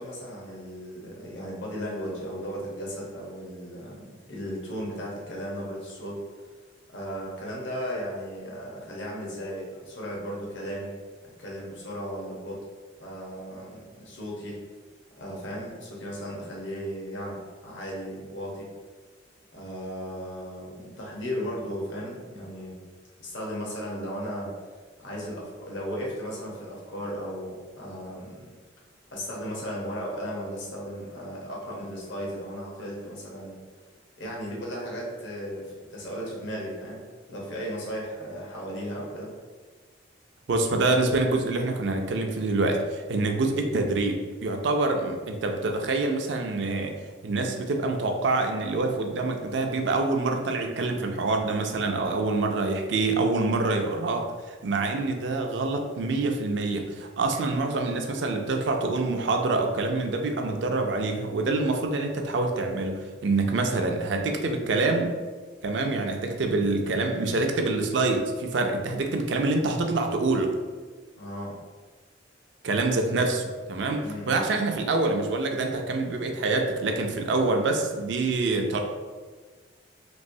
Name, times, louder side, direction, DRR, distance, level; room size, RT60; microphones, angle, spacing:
voice 1, 0.0-6.2 6.9-10.9 11.4-12.6 13.0-14.6 15.2-18.7 19.5-22.8 23.2-24.5 25.0-28.5 29.1-33.6 34.2-37.0 37.3-39.3 63.7-63.8 71.1-71.6 74.0-74.5, equal, 80° left, -4 dB, 0.9 m, -36 dB
voice 2, 40.5-46.9 47.2-65.2 65.6-70.5 72.6-78.8, right 3 dB, 70° right, 3 dB, 0.4 m, -26 dB
3.1 x 3.0 x 2.6 m, 1.4 s
head